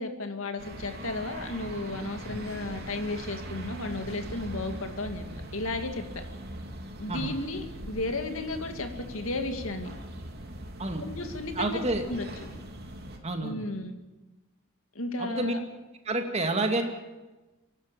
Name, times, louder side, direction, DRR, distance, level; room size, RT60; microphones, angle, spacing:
voice 1, 0.0-5.3 5.5-6.0 7.0-9.9 11.0-12.3 13.4-14.0 14.9-15.6, left 2 dB, 80° left, 6 dB, 2.3 m, -34 dB
sound 1, 0.6-13.2, right 1 dB, 50° right, 2.9 m, -41 dB
voice 2, 11.5-12.0 13.2-13.6 15.2-15.5 16.0-16.8, right 2 dB, 30° right, 5 dB, 2.4 m, -29 dB
25.0 x 11.5 x 9.0 m, 1.1 s
head